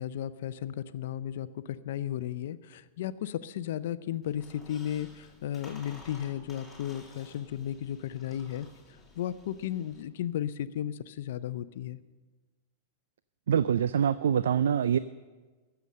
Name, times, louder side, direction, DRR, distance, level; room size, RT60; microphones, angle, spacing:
voice 1, 0.0-8.7 9.2-12.0, left 11 dB, 70° left, 15 dB, 0.5 m, -34 dB
Squeak, 4.2-10.0, left 2 dB, 5° left, 2.8 m, -54 dB
voice 2, 13.5-15.0, right 8 dB, 90° right, 16 dB, 0.3 m, -25 dB
14.5 x 7.0 x 7.6 m, 1.3 s
hypercardioid pair, 135°, 0 cm